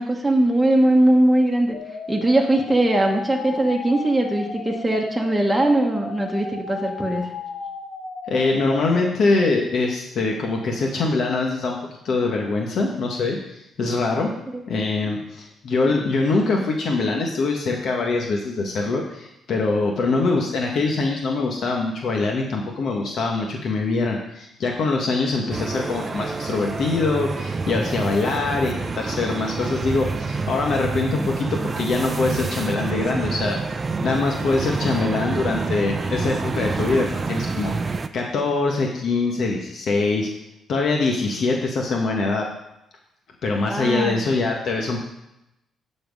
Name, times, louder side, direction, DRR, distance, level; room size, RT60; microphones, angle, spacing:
voice 1, 0.0-1.8 2.1-7.3 14.5-14.6 43.7-44.2, right 1 dB, 10° right, -1 dB, 1.3 m, -20 dB
sound 1, 1.7-9.1, left 4 dB, 85° left, 1.6 m, -35 dB
voice 2, 8.3-11.8 12.0-14.3 14.7-33.6 34.0-40.3 40.7-42.4 43.4-45.0, left 3 dB, 60° left, 1 dB, 1.4 m, -23 dB
sound 2, 25.5-38.1, right 4 dB, 30° right, 0.5 m, -28 dB
12.0 x 4.4 x 5.3 m, 0.85 s
cardioid pair, 90°, 0 cm